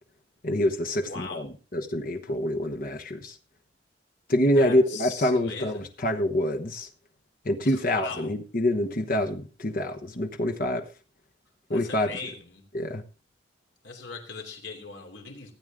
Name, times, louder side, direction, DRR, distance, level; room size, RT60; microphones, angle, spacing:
voice 1, 0.4-3.4 4.3-6.9 7.4-10.9 11.7-12.2 12.7-13.0, left 1 dB, 45° left, 1.1 m, -26 dB
voice 2, 1.0-1.5 4.5-5.9 7.6-8.3 11.7-12.7 13.8-15.5, left 5 dB, 70° left, 3.0 m, -40 dB
16.0 x 9.0 x 3.6 m
head